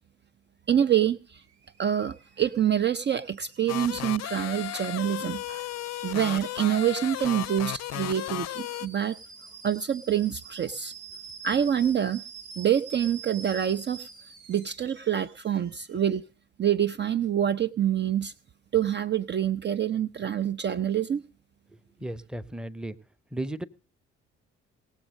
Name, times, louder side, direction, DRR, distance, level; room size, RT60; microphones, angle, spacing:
voice 1, 0.7-1.4 1.8-5.7 6.0-9.2 9.6-10.9 11.4-12.2 12.6-14.1 14.5-16.2 16.6-18.3 18.7-21.2, right 10 dB, 35° right, 14 dB, 0.5 m, -26 dB
Alarm / Boiling, 1.4-16.2, right 5 dB, 85° right, 1.4 m, -48 dB
sound 1, 3.7-8.9, left 14 dB, 55° left, 0.5 m, -34 dB
voice 2, 21.7-23.0 23.3-23.6, right 1 dB, 5° right, 13 dB, 0.8 m, -35 dB
18.5 x 7.4 x 6.4 m, 0.38 s
hypercardioid pair, 50°, 31 cm